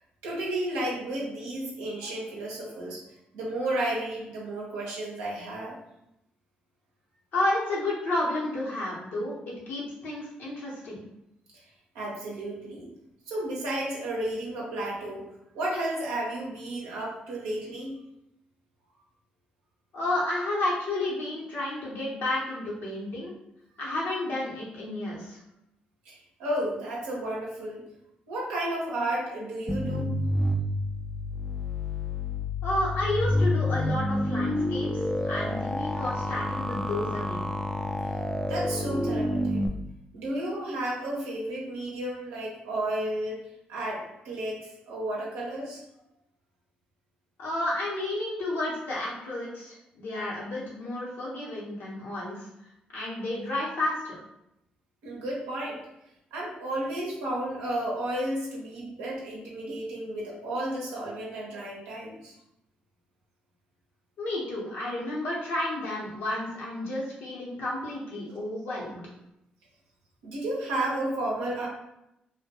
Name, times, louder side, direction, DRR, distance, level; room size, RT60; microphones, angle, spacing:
voice 1, 0.2-3.0 3.3-5.8 11.9-12.9 13.3-15.2 15.5-18.0 26.1-27.8 28.3-30.2 38.5-39.6 40.1-43.4 43.7-45.8 55.0-55.8 56.3-62.3 70.2-71.7, right 1 dB, 90° right, -4 dB, 0.6 m, -32 dB
voice 2, 7.3-11.1 19.9-23.3 23.8-25.4 32.6-37.5 47.4-52.5 52.9-54.2 64.2-69.0, left 1 dB, 70° left, -5 dB, 0.8 m, -31 dB
sound 1, 29.7-39.7, left 1 dB, 15° left, 0.3 m, -29 dB
2.2 x 2.2 x 2.8 m, 0.84 s
hypercardioid pair, 50°, 4 cm